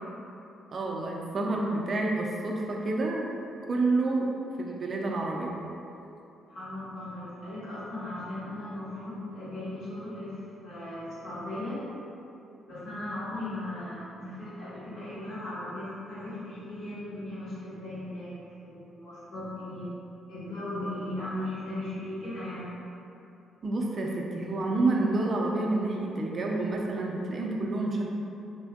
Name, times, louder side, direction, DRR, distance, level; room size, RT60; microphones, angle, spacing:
voice 1, 0.7-3.3 3.7-4.3 4.6-5.5 23.6-28.0, right 2 dB, 40° right, -1 dB, 0.4 m, -28 dB
voice 2, 6.5-11.8 12.7-19.9 20.3-22.7, left 1 dB, 75° left, -12 dB, 1.4 m, -37 dB
3.4 x 2.6 x 2.3 m, 2.8 s
cardioid pair, 90°, 0 cm